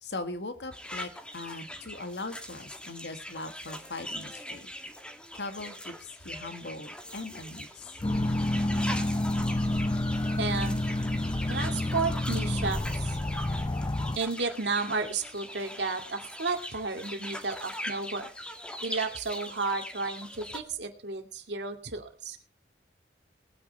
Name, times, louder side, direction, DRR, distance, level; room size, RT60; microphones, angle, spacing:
voice 1, 0.0-4.7 5.3-7.9, left 2 dB, 70° left, 9 dB, 1.9 m, -40 dB
sound 1, 0.7-20.6, equal, 5° left, 1.9 m, -41 dB
sound 2, 8.0-14.2, left 1 dB, 20° left, 0.6 m, -29 dB
voice 2, 10.4-10.8 11.5-13.2 14.2-18.3 18.8-22.4, right 4 dB, 80° right, 5 dB, 2.3 m, -32 dB
19.0 x 9.4 x 4.2 m, 0.37 s
head